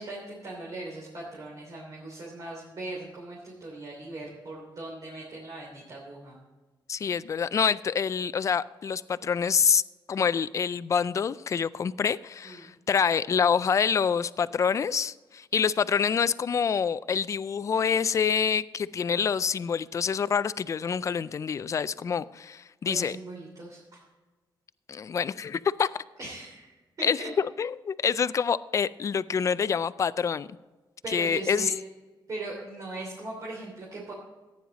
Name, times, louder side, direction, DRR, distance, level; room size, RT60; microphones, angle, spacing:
voice 1, 0.0-6.4 12.4-12.7 22.8-24.0 26.2-27.3 31.0-31.7 32.3-34.1, right 2 dB, 45° right, -4 dB, 3.0 m, -39 dB
voice 2, 6.9-9.8 10.1-23.2 24.9-25.9 27.0-30.5 31.1-31.7, left 6 dB, 40° left, 16 dB, 0.4 m, -26 dB
15.0 x 9.4 x 4.1 m, 1.2 s
wide cardioid pair, 155°, 8 cm